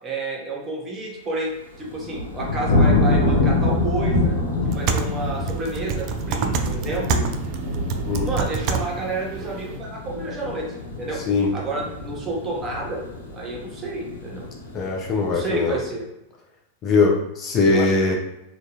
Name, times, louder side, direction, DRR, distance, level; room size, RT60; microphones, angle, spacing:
voice 1, 0.0-4.4 4.7-7.2 8.2-11.2 11.5-13.0 13.3-14.5 15.3-16.0 17.6-18.2, right 2 dB, 20° right, -2 dB, 0.8 m, -30 dB
sound 1, 1.6-15.8, left 2 dB, 75° left, 0.7 m, -26 dB
sound 2, 4.7-9.8, right 5 dB, 40° right, 0.3 m, -28 dB
voice 2, 14.7-15.8 16.8-18.1, left 4 dB, 30° left, -1 dB, 0.5 m, -21 dB
3.5 x 2.2 x 2.8 m, 0.89 s
figure-of-eight pair, 90°, 0 cm